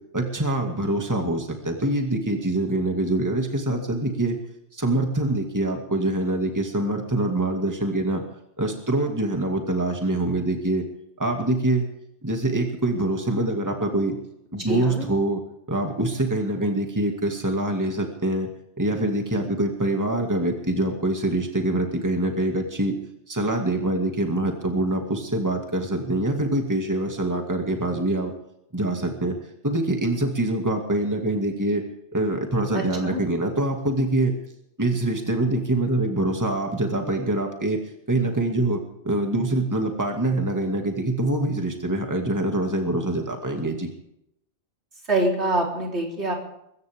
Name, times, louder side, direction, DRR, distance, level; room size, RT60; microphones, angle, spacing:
voice 1, 0.1-4.4 4.7-8.2 8.6-10.8 11.2-11.9 12.2-14.2 14.5-15.4 15.7-18.5 18.8-22.9 23.3-28.3 28.7-29.3 29.6-31.8 32.1-34.3 34.8-37.8 38.1-43.9, right 1 dB, 15° right, 3 dB, 2.3 m, -24 dB
voice 2, 14.7-15.1 32.7-33.2 45.1-46.3, right 2 dB, 60° right, 0 dB, 4.4 m, -25 dB
22.0 x 16.0 x 3.7 m, 0.77 s
omnidirectional pair, 1.3 m